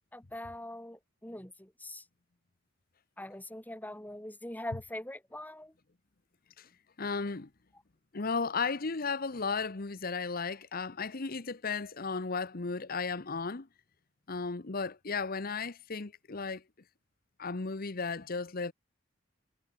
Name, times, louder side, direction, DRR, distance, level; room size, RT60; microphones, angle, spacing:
voice 1, 0.1-2.0 3.2-5.7, left 1 dB, 10° left, 3.6 m, -42 dB
voice 2, 7.0-7.5 8.1-13.7 14.3-16.6 17.4-18.7, left 4 dB, 50° left, 1.0 m, -35 dB
head